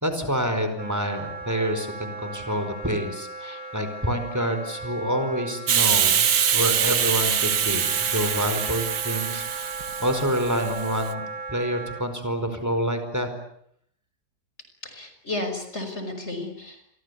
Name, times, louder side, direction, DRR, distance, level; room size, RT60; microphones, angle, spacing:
voice 1, 0.0-6.3 6.5-9.7 10.0-13.3, equal, 10° right, 8 dB, 4.9 m, -27 dB
Wind instrument woodwind instrument, 0.8-12.0, right 3 dB, 50° right, 3.3 m, -37 dB
Hiss, 5.7-11.0, right 8 dB, 75° right, 1.9 m, -24 dB
voice 2, 14.8-16.8, left 2 dB, 40° left, 6 dB, 5.7 m, -33 dB
29.5 x 24.0 x 8.4 m, 0.69 s
omnidirectional pair, 1.8 m